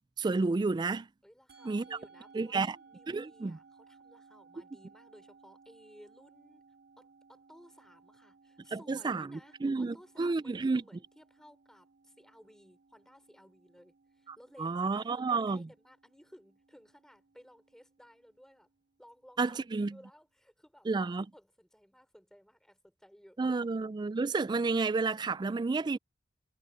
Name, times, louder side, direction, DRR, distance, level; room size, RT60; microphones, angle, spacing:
voice 1, 0.2-1.1 1.6-2.0 2.3-2.8 3.1-3.6 8.7-10.8 14.3-15.7 19.4-20.0 20.9-21.3 23.4-26.0, right 3 dB, 25° right, 0.3 m, -31 dB
voice 2, 1.2-6.6 7.0-18.7 19.0-20.9 21.3-23.6, equal, 5° left, 4.9 m, -58 dB
Musical instrument, 1.5-20.0, right 4 dB, 55° right, 2.7 m, -62 dB
head